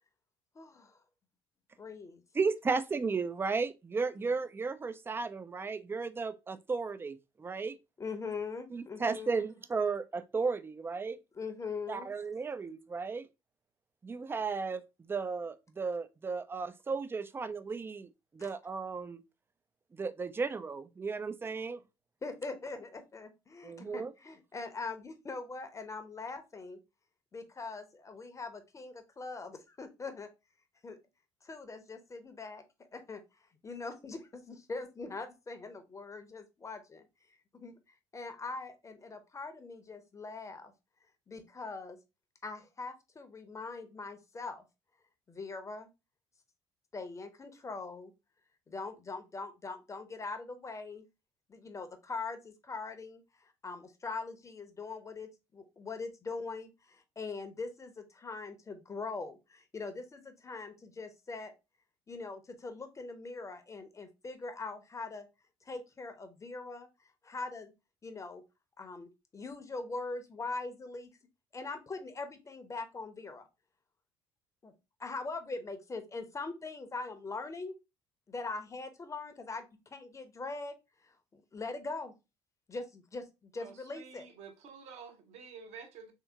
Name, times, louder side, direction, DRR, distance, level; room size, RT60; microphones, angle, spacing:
voice 1, 0.5-1.0 1.8-2.2 4.2-4.3 8.0-9.4 11.3-12.1 18.4-18.5 22.2-26.8 27.3-30.3 30.8-31.0 31.4-32.6 32.9-37.1 37.5-37.8 38.1-40.7 41.3-42.0 42.4-44.6 45.3-45.9 46.9-48.1 48.7-51.0 51.5-61.5 62.1-65.3 65.6-67.7 68.0-68.4 68.8-71.1 71.5-73.5 74.6-74.7 75.0-77.7 78.3-80.7 81.0-82.1 82.7-84.2, left 3 dB, 20° left, 0.8 m, -42 dB
voice 2, 2.3-7.8 8.7-11.2 11.9-13.3 14.0-19.2 19.9-21.8 23.6-24.1, right 4 dB, 15° right, 0.4 m, -34 dB
voice 3, 83.6-86.1, right 5 dB, 50° right, 0.9 m, -50 dB
3.5 x 2.8 x 3.5 m
figure-of-eight pair, 55°, 14 cm